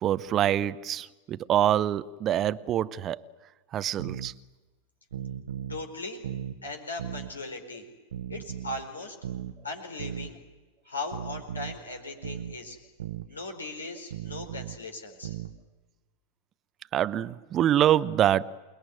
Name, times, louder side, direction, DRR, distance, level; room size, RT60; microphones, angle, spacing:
voice 1, 0.0-3.2 3.7-4.3 16.9-18.6, right 11 dB, 30° right, 0.8 m, -25 dB
sound 1, 4.0-4.3 5.1-5.8 6.2-6.6 7.0-7.3 8.1-8.8 9.2-9.6 10.0-10.3 11.1-11.8 12.2-12.6 13.0-13.3 14.1-14.8 15.2-15.6, right 9 dB, 60° right, 1.2 m, -37 dB
voice 2, 5.7-6.3 6.6-7.9 8.3-9.2 9.6-10.4 10.9-12.8 13.3-15.4, left 2 dB, 75° left, 4.5 m, -38 dB
28.5 x 20.5 x 9.5 m
figure-of-eight pair, 90°, 0 cm